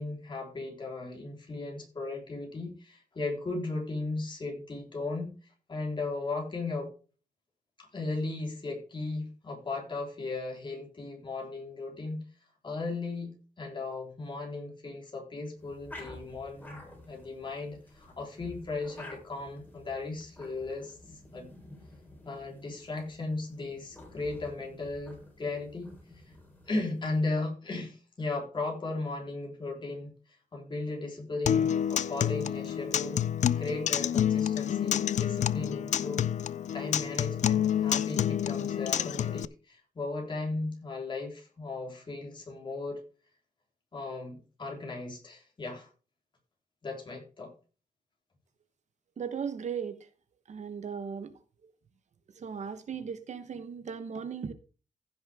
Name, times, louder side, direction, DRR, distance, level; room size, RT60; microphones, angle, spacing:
voice 1, 0.0-6.9 7.8-12.2 12.6-16.8 17.1-21.0 21.3-21.5 22.2-26.3 26.7-30.1 30.5-33.2 33.6-36.3 36.7-43.0 43.9-45.9 46.8-47.5, left 3 dB, 35° left, 3.8 m, -36 dB
sound 1, 15.6-27.3, left 1 dB, 10° left, 4.0 m, -51 dB
Acoustic guitar, 31.5-39.4, left 9 dB, 55° left, 0.4 m, -28 dB
voice 2, 49.2-50.0 50.5-51.3 52.4-54.5, right 6 dB, 55° right, 1.0 m, -37 dB
15.5 x 6.3 x 3.5 m
wide cardioid pair, 150°, 15 cm